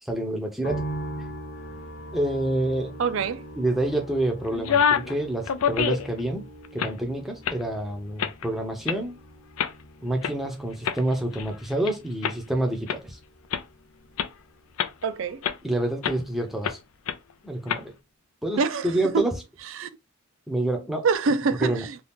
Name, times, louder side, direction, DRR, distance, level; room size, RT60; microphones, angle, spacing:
voice 1, 0.0-0.9 2.1-2.9 3.6-6.5 6.7-9.2 10.0-13.2 15.6-16.8 17.4-17.9 18.4-19.4 20.5-21.1 21.6-21.8, right 1 dB, ahead, 0.6 m, -27 dB
sound 1, 0.6-15.9 16.2-17.0, right 1 dB, 50° left, 0.9 m, -42 dB
voice 2, 3.0-3.4 15.0-15.4 18.6-18.9 19.1-19.2 19.8-19.9 21.0-22.0, right 5 dB, 65° right, 0.4 m, -25 dB
sound 2, 4.5-5.1 5.5-6.2 6.6-7.0 7.5-7.6 8.2-8.5 8.9-9.0 9.6-9.7 10.2-10.3 10.8-11.9 12.2-12.3 12.9-13.0 13.5-13.6 14.2-14.3 14.8-15.0 15.4-15.6 16.0-16.2 16.6-16.8 17.1-17.2 17.7-17.8, left 8 dB, 85° left, 0.4 m, -26 dB
2.7 x 2.3 x 3.5 m
head